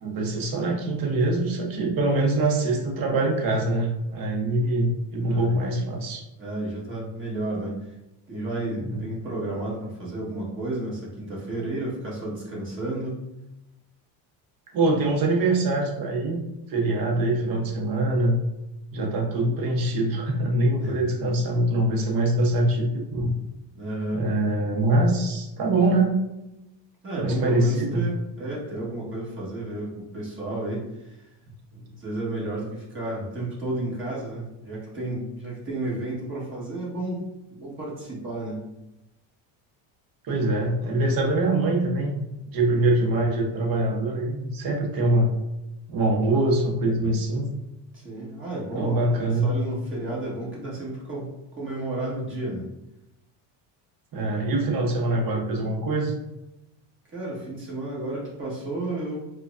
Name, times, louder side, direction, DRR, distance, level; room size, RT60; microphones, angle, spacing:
voice 1, 0.0-6.2 8.9-9.1 14.7-16.4 16.7-18.4 18.9-23.3 24.1-26.2 27.2-28.1 31.7-31.8 40.2-42.2 42.5-45.3 45.9-47.5 48.7-49.5 54.1-56.1, right 2 dB, 45° right, 1 dB, 0.9 m, -24 dB
voice 2, 5.2-5.6 6.4-7.8 8.3-13.2 20.8-21.0 23.7-24.2 27.0-31.3 32.0-38.6 47.9-51.3 51.6-52.7 57.1-59.2, right 2 dB, 25° right, -5 dB, 1.3 m, -32 dB
4.5 x 2.3 x 2.4 m, 0.93 s
cardioid pair, 125°, 48 cm